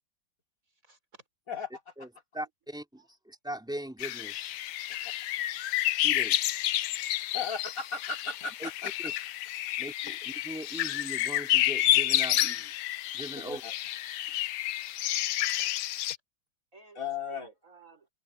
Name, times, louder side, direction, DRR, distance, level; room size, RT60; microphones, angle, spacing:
voice 1, 0.7-1.2 3.0-3.1 15.4-15.8 16.1-16.2 16.7-18.1, right 3 dB, 45° right, 5.9 m, -55 dB
voice 2, 2.3-4.5 6.0-6.5 8.6-8.7 9.8-12.7 13.1-13.6, right 1 dB, ahead, 3.2 m, -40 dB
sound 1, 4.0-16.2, left 14 dB, 75° left, 1.2 m, -30 dB
voice 3, 7.3-9.1 13.3-13.7 14.3-14.4 16.9-17.5, left 5 dB, 50° left, 5.2 m, -36 dB
omnidirectional pair, 1.9 m